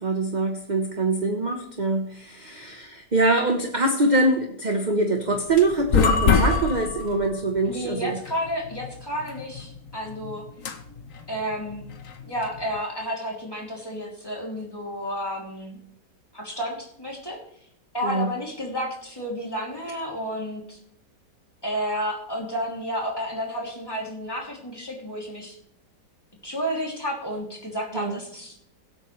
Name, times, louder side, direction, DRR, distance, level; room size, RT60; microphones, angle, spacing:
voice 1, 0.0-8.2 18.0-18.3 27.9-28.2, right 2 dB, 30° right, 3 dB, 1.1 m, -24 dB
sound 1, 5.3-12.8, left 5 dB, 55° left, 1.3 m, -26 dB
voice 2, 7.7-10.4 11.3-11.8 12.3-15.8 16.3-17.4 17.9-20.8 21.6-25.6 26.4-28.5, equal, 15° left, -3 dB, 3.0 m, -31 dB
22.0 x 8.5 x 3.3 m, 0.68 s
omnidirectional pair, 1.8 m